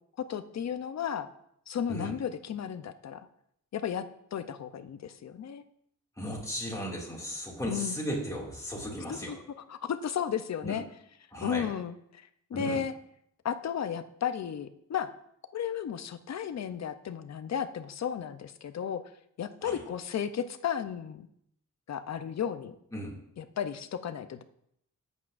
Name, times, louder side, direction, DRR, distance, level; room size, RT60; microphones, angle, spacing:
voice 1, 0.2-1.3 1.7-3.3 3.7-5.6 7.7-7.9 9.1-9.4 9.7-10.8 11.4-12.9 13.4-15.1 15.5-19.0 19.4-21.3 21.9-22.8 23.4-24.4, left 8 dB, 60° left, 11 dB, 0.6 m, -34 dB
voice 2, 6.2-9.4 10.6-10.8 11.3-11.7 12.5-12.8 19.6-19.8 22.9-23.1, equal, 10° left, -3 dB, 2.2 m, -36 dB
12.0 x 8.2 x 2.5 m, 0.73 s
wide cardioid pair, 160°, 31 cm